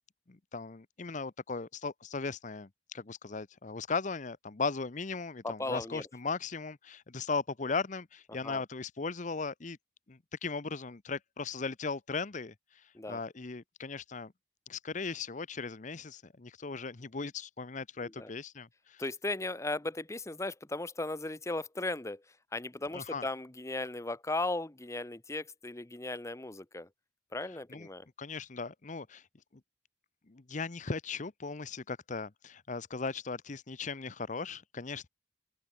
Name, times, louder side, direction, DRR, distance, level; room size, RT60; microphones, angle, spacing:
voice 1, 0.3-9.8 10.1-14.3 14.7-19.0 22.9-23.2 27.7-27.9 28.2-29.2 30.3-35.1, left 4 dB, 45° left, 0.8 m, -38 dB
voice 2, 5.4-6.0 8.4-8.6 12.9-13.2 18.0-18.3 19.0-22.2 22.5-26.9 27.3-28.1, left 2 dB, 15° left, 0.9 m, -36 dB
open air
head